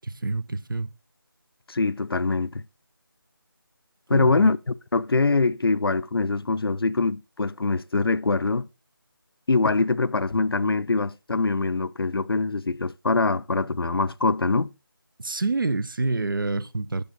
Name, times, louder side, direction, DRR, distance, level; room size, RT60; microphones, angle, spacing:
voice 1, 0.0-0.9 4.1-4.5 15.2-17.0, right 3 dB, 65° right, 0.7 m, -27 dB
voice 2, 1.7-2.6 4.1-8.7 9.5-14.7, left 3 dB, 90° left, 0.6 m, -23 dB
7.1 x 6.6 x 3.7 m
figure-of-eight pair, 175°, 12 cm